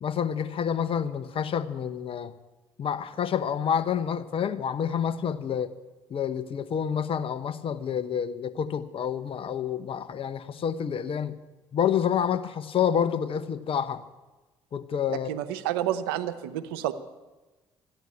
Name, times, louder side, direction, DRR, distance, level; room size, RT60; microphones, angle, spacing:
voice 1, 0.0-2.3 2.8-5.7 6.1-11.4 11.7-14.0 14.7-15.3, left 8 dB, 50° left, 12 dB, 1.0 m, -28 dB
voice 2, 15.1-16.9, right 12 dB, 85° right, 10 dB, 0.8 m, -30 dB
14.0 x 10.0 x 9.6 m, 1.2 s
hypercardioid pair, 55°, 12 cm